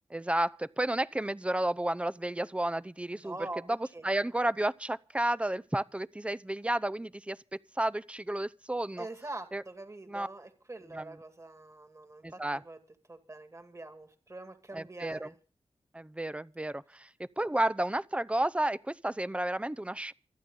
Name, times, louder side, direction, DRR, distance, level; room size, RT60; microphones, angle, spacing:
voice 1, 0.1-3.4 3.7-3.8 4.0-7.4 7.8-9.1 9.5-9.6 10.1-10.3 10.9-11.1 12.2-12.6 14.7-15.3 15.9-17.1 17.4-20.1, right 1 dB, 10° right, 0.6 m, -31 dB
voice 2, 3.2-4.0 9.0-12.8 13.1-15.4, right 2 dB, 25° right, 2.2 m, -44 dB
26.0 x 9.3 x 3.9 m
cardioid pair, 65°, 11 cm